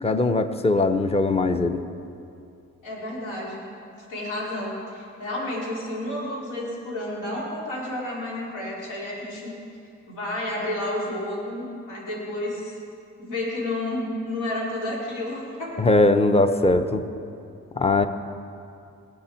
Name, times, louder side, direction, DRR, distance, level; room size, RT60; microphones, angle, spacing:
voice 1, 0.0-1.8 15.8-17.0 17.8-18.1, left 2 dB, 20° left, 9 dB, 0.7 m, -20 dB
voice 2, 2.8-3.7 4.1-9.5 10.1-12.8 13.2-15.8, left 1 dB, 90° left, -5 dB, 3.5 m, -31 dB
18.5 x 8.5 x 4.5 m, 2.5 s
cardioid pair, 90°, 30 cm